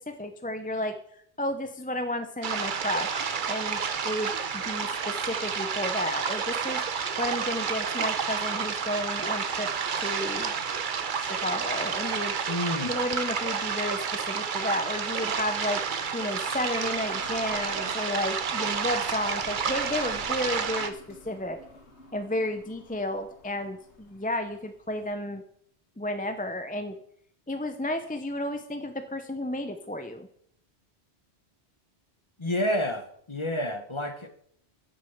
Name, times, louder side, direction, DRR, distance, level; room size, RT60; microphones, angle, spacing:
voice 1, 0.1-1.0 1.4-9.7 10.0-10.5 11.2-12.3 12.8-21.6 22.1-25.4 26.0-27.0 27.5-30.3, left 1 dB, 10° left, 7 dB, 0.6 m, -32 dB
sound 1, 2.4-20.9, right 6 dB, 50° right, 0.9 m, -30 dB
sound 2, 11.3-25.1, left 2 dB, 85° left, 2.2 m, -52 dB
voice 2, 12.5-13.0 32.4-34.3, left 1 dB, 25° left, 8 dB, 1.1 m, -29 dB
8.7 x 6.9 x 7.1 m, 0.65 s
omnidirectional pair, 1.1 m